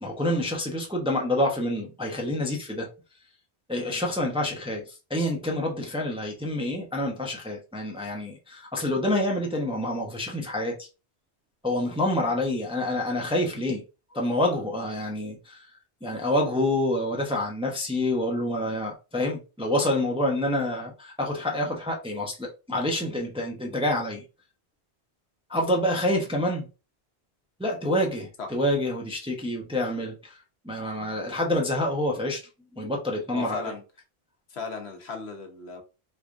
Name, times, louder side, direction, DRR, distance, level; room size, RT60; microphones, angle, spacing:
voice 1, 0.0-2.9 3.7-10.9 11.6-13.8 14.1-15.7 16.0-24.2 25.5-26.7 27.6-32.4 32.8-33.7, left 1 dB, 5° right, 0.6 m, -27 dB
voice 2, 33.3-33.8 34.5-35.8, left 4 dB, 80° left, 1.1 m, -36 dB
3.6 x 3.2 x 2.5 m
omnidirectional pair, 1.1 m